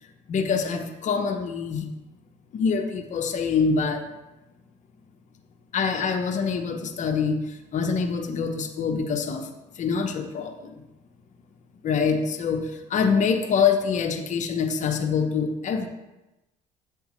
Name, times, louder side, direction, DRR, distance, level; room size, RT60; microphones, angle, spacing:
voice 1, 0.3-1.9 2.5-4.0 5.7-7.4 7.7-9.5 9.8-10.7 11.8-15.9, left 5 dB, 50° left, 4 dB, 0.9 m, -25 dB
8.4 x 6.9 x 3.1 m, 0.99 s
supercardioid pair, 90°, 16 cm